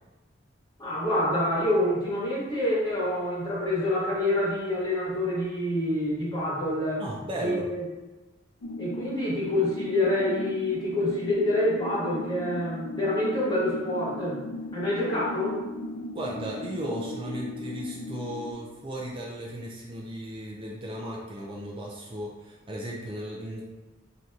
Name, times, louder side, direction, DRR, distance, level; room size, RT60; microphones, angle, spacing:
voice 1, 0.8-7.0 7.4-7.8 8.8-14.4 14.7-15.6, left 1 dB, 20° left, -6 dB, 1.4 m, -27 dB
voice 2, 7.0-7.7 16.1-23.6, right 1 dB, 25° right, -3 dB, 0.6 m, -35 dB
sound 1, 8.6-18.5, left 1 dB, 85° left, 0.5 m, -37 dB
4.0 x 2.8 x 4.6 m, 1.1 s
head